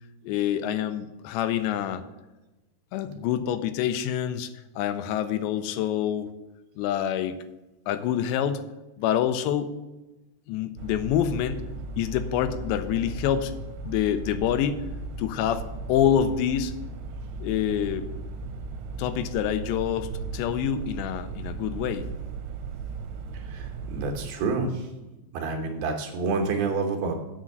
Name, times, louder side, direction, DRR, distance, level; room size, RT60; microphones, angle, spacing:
voice 1, 0.2-2.0 2.9-4.5 4.8-6.3 6.8-7.4 7.9-8.6 9.0-9.7 10.5-11.6 12.0-13.5 13.8-14.8 15.2-16.7 17.4-18.1 19.0-22.1, left 10 dB, 90° left, 11 dB, 2.9 m, -26 dB
sound 1, 10.8-24.3, right 3 dB, 90° right, 2.9 m, -36 dB
voice 2, 23.3-24.9 25.3-27.2, right 4 dB, 70° right, 2 dB, 2.7 m, -28 dB
8.0 x 6.2 x 7.7 m, 1.1 s
omnidirectional pair, 5.0 m